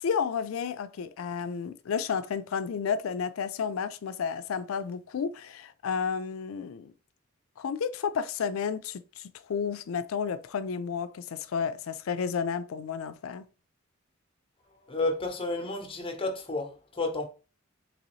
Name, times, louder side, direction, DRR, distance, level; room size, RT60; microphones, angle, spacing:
voice 1, 0.0-6.9 7.6-13.4, left 6 dB, 80° left, 0.4 m, -32 dB
voice 2, 14.8-17.3, left 2 dB, 25° left, 0.8 m, -31 dB
3.9 x 3.0 x 3.1 m
head